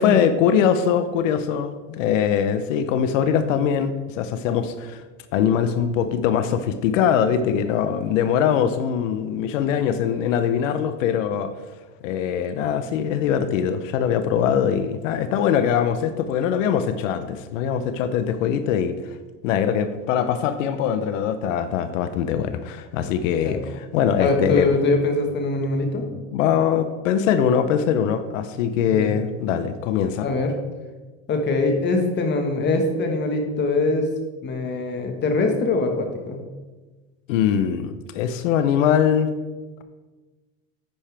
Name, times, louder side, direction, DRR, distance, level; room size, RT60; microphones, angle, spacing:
voice 1, 0.0-5.0 5.3-11.5 12.0-19.2 19.4-24.7 26.3-30.3 37.3-39.3, left 8 dB, 85° left, 10 dB, 0.8 m, -22 dB
voice 2, 24.2-26.1 28.9-29.1 30.2-30.5 31.3-34.1 34.4-36.4, left 3 dB, 30° left, 4 dB, 1.5 m, -22 dB
10.0 x 8.7 x 3.4 m, 1.3 s
supercardioid pair, 135°, 37 cm